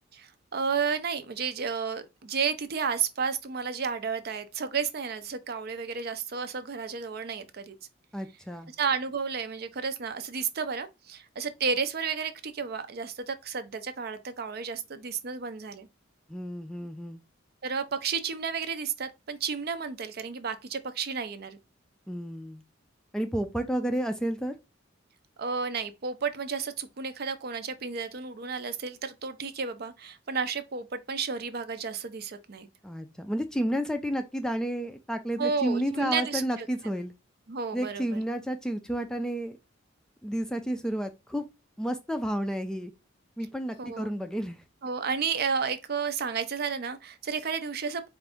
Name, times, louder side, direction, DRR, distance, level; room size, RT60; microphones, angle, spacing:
voice 1, 0.1-7.8 8.8-15.9 17.6-21.6 25.4-32.7 35.4-36.7 37.5-38.2 43.8-44.1 44.8-48.1, right 5 dB, 55° right, 0.5 m, -32 dB
voice 2, 8.1-8.7 16.3-17.2 22.1-22.6 23.1-24.5 32.8-37.1 37.7-39.6 40.2-41.4 41.8-42.9 43.4-44.6, equal, 5° left, 0.3 m, -31 dB
4.5 x 2.5 x 3.5 m
head